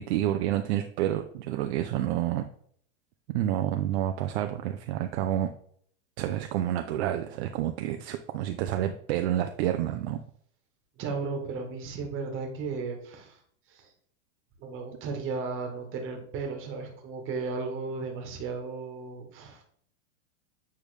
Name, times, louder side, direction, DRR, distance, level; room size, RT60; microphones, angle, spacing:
voice 1, 0.0-2.5 3.3-5.5 6.2-10.2, right 12 dB, 60° right, 6 dB, 0.5 m, -29 dB
voice 2, 11.0-13.4 13.7-13.9 14.6-19.6, right 4 dB, 35° right, 3 dB, 1.4 m, -35 dB
8.3 x 3.5 x 3.2 m, 0.62 s
supercardioid pair, 140°, 36 cm